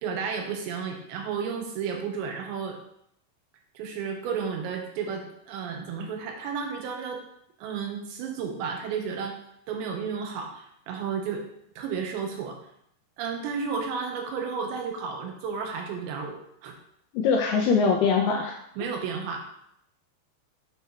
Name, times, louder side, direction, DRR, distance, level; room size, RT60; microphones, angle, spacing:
voice 1, 0.0-2.8 3.8-7.2 7.6-9.3 9.7-11.4 11.8-12.6 13.2-16.7 18.8-19.5, right 6 dB, 85° right, 2 dB, 3.1 m, -32 dB
voice 2, 17.1-18.5, left 5 dB, 85° left, 1 dB, 2.4 m, -22 dB
7.4 x 4.6 x 3.4 m, 0.73 s
omnidirectional pair, 5.1 m